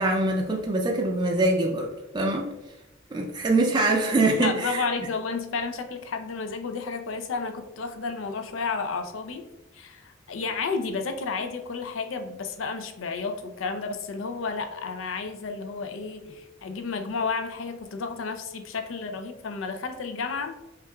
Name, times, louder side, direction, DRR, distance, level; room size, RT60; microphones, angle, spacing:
voice 1, 0.0-1.9 2.1-2.5 3.1-4.9, right 2 dB, 25° right, 1 dB, 0.4 m, -23 dB
voice 2, 4.4-9.5 9.7-20.5, left 4 dB, 85° left, 7 dB, 0.5 m, -32 dB
5.6 x 2.4 x 2.3 m, 0.95 s
head